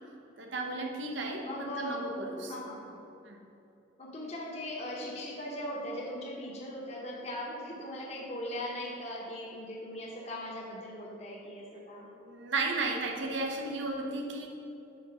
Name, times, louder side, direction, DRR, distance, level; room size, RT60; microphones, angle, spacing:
voice 1, 0.4-2.5 3.2-3.4 12.1-14.5, right 3 dB, 80° right, 2 dB, 0.9 m, -34 dB
voice 2, 1.4-2.1 2.5-3.0 4.0-12.1, left 1 dB, 35° left, -3 dB, 0.9 m, -39 dB
5.7 x 4.1 x 5.7 m, 2.8 s
head